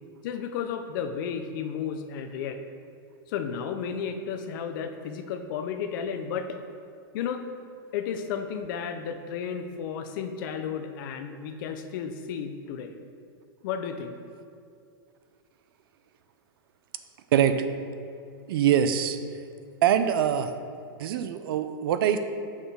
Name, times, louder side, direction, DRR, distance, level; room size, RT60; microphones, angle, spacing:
voice 1, 0.2-2.6 3.3-6.6 7.1-7.5 7.9-12.9 13.6-14.2, left 7 dB, 60° left, 7 dB, 0.6 m, -33 dB
voice 2, 18.5-19.2 19.8-20.5 21.0-22.2, right 9 dB, 75° right, 10 dB, 0.5 m, -23 dB
6.3 x 5.7 x 3.6 m, 2.4 s
hypercardioid pair, 130°, 12 cm